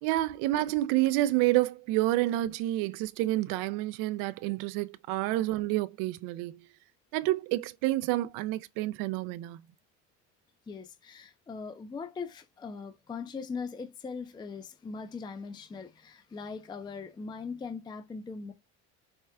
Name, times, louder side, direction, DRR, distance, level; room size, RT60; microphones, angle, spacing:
voice 1, 0.0-6.6 7.1-9.6, right 16 dB, 70° right, 0.5 m, -29 dB
voice 2, 10.7-18.5, left 5 dB, 15° left, 0.4 m, -40 dB
4.5 x 2.1 x 3.5 m
supercardioid pair, 110°, 35 cm